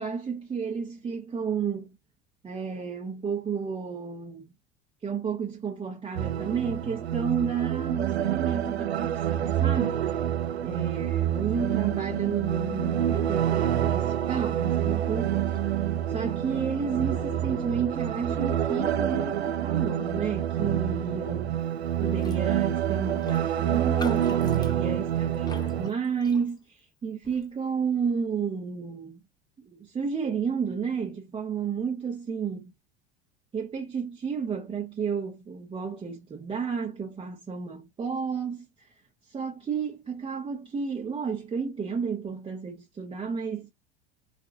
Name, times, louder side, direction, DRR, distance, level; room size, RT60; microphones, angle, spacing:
voice 1, 0.0-2.0 2.4-4.5 5.0-10.1 10.6-15.5 16.1-21.6 22.0-29.2 29.7-32.7 33.5-38.9 39.2-43.7, right 6 dB, 15° right, 0.8 m, -32 dB
sound 1, 6.2-25.9, right 11 dB, 75° right, 0.5 m, -27 dB
sound 2, 11.7-19.4, left 10 dB, 45° left, 0.7 m, -44 dB
Raindrop, 22.1-22.5 22.7-22.8 23.2-26.8 27.2-27.5, left 2 dB, 15° left, 0.7 m, -43 dB
4.6 x 2.5 x 2.5 m
figure-of-eight pair, 80°, 32 cm